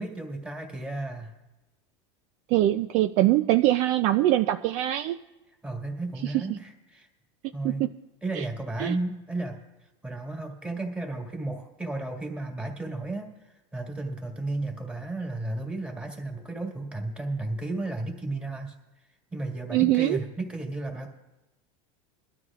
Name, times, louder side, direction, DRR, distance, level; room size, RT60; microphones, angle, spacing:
voice 1, 0.0-1.3 5.6-7.1 7.5-7.8 8.2-9.6 10.0-18.7 19.3-21.1, right 2 dB, 5° right, 1 dB, 1.9 m, -33 dB
voice 2, 2.5-5.2 6.2-6.4 7.6-7.9 8.3-8.5 8.8-9.0 19.7-20.2, right 14 dB, 45° right, 8 dB, 0.4 m, -23 dB
22.5 x 12.5 x 2.4 m, 1.1 s
supercardioid pair, 150°, 15 cm